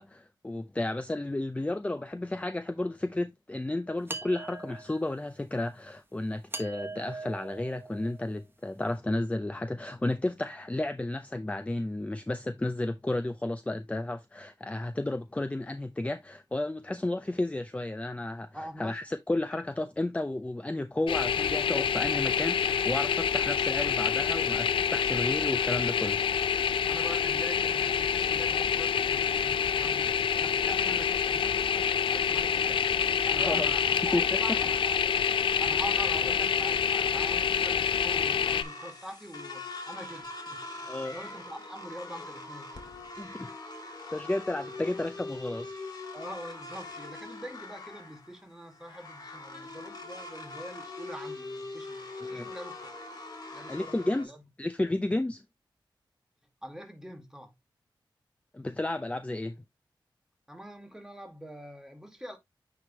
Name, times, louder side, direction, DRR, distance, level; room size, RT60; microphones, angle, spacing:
voice 1, 0.0-26.2 33.3-33.7 34.1-34.2 40.9-41.2 43.2-43.5 44.1-45.7 52.2-52.5 53.7-54.3 54.6-55.4 58.5-59.6, left 2 dB, 15° left, 0.5 m, -32 dB
sound 1, 4.1-5.2 6.5-8.4, right 2 dB, 25° right, 1.2 m, -41 dB
voice 2, 18.5-18.9 26.9-32.9 33.2-35.0 35.6-42.8 43.3-43.5 46.1-53.0 53.5-54.4 56.6-57.5 60.5-62.4, equal, 5° right, 2.0 m, -44 dB
sound 2, 21.1-38.6, left 7 dB, 85° left, 0.4 m, -27 dB
sound 3, 37.1-54.2, left 3 dB, 50° left, 2.4 m, -43 dB
9.3 x 3.4 x 3.1 m
cardioid pair, 65°, 9 cm